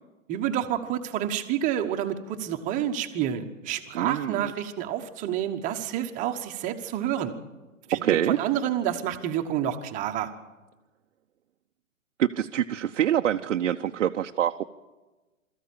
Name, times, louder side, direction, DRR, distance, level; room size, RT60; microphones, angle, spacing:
voice 1, 0.3-7.3 7.9-10.3, right 10 dB, 20° right, 6 dB, 1.2 m, -29 dB
voice 2, 3.9-4.5 7.9-8.4 12.2-14.6, right 10 dB, 60° right, 4 dB, 0.8 m, -25 dB
21.5 x 14.0 x 8.6 m, 1.2 s
hypercardioid pair, 140°, 40 cm